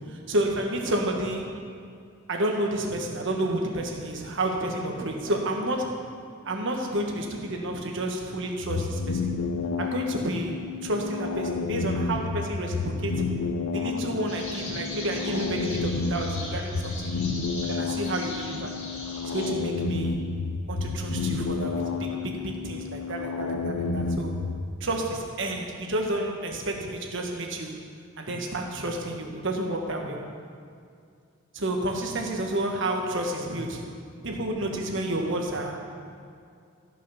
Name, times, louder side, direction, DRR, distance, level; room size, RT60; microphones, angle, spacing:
voice 1, 0.1-1.6 2.3-6.0 6.4-9.3 9.8-13.3 13.7-17.1 17.6-18.8 19.2-20.3 20.7-24.4 24.8-27.8 28.2-30.2 31.5-33.9 34.2-35.8, right 1 dB, 60° right, 1 dB, 1.4 m, -30 dB
sound 1, 8.6-24.7, left 4 dB, 85° left, 0.7 m, -30 dB
sound 2, 14.3-19.5, left 2 dB, 35° left, 2.6 m, -39 dB
14.0 x 6.1 x 5.7 m, 2.3 s
head